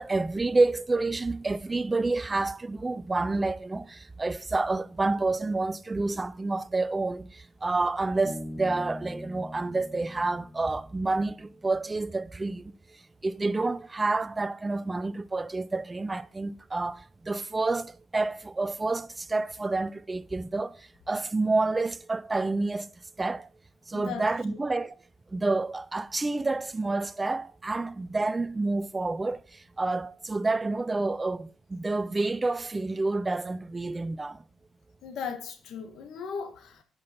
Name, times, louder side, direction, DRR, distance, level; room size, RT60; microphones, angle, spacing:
voice 1, 0.0-12.7 13.2-20.8 21.1-22.9 23.2-23.5 23.9-24.9 25.3-29.4 29.8-34.4, right 3 dB, 20° right, 0.5 m, -29 dB
Bass guitar, 8.2-11.8, left 1 dB, 15° left, 1.4 m, -42 dB
voice 2, 35.0-36.8, left 6 dB, 75° left, 1.7 m, -37 dB
11.0 x 5.9 x 5.2 m
cardioid pair, 90°, 0 cm